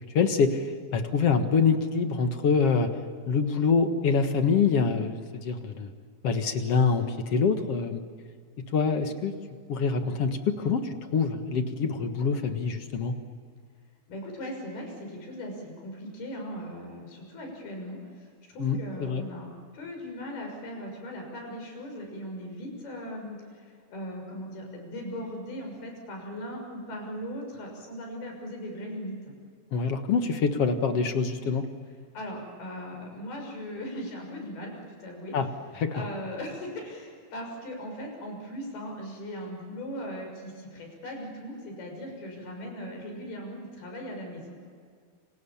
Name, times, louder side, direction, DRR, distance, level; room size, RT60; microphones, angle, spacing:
voice 1, 0.1-0.6 0.9-2.9 3.3-5.2 5.4-5.9 6.2-8.0 8.7-9.3 9.7-10.8 11.1-13.2 18.6-19.2 29.7-31.7 35.3-35.5 35.8-36.0, left 5 dB, 50° left, 7 dB, 2.0 m, -25 dB
voice 2, 14.1-18.0 18.5-19.5 19.7-23.4 23.9-29.3 32.1-35.3 35.9-44.6, equal, 85° left, 2 dB, 8.2 m, -38 dB
29.5 x 27.0 x 7.3 m, 2.1 s
omnidirectional pair, 4.3 m